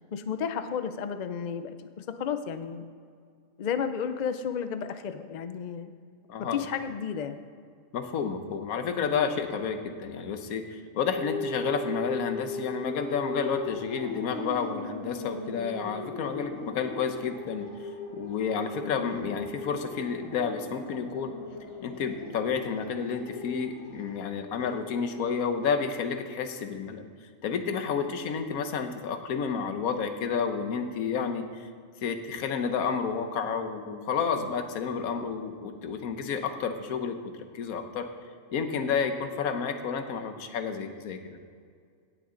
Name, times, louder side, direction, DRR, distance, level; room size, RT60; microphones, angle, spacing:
voice 1, 0.1-2.8 3.6-5.9 6.4-7.4, left 7 dB, 60° left, 10 dB, 0.4 m, -32 dB
voice 2, 6.3-6.6 7.9-17.7 18.1-21.3 21.8-27.1 27.4-31.7 32.0-37.2 37.5-38.1 38.5-41.4, left 6 dB, 90° left, 7 dB, 1.3 m, -30 dB
sound 1, 11.1-25.4, left 2 dB, 25° left, 1.0 m, -39 dB
17.0 x 6.7 x 3.8 m, 2.1 s
omnidirectional pair, 1.5 m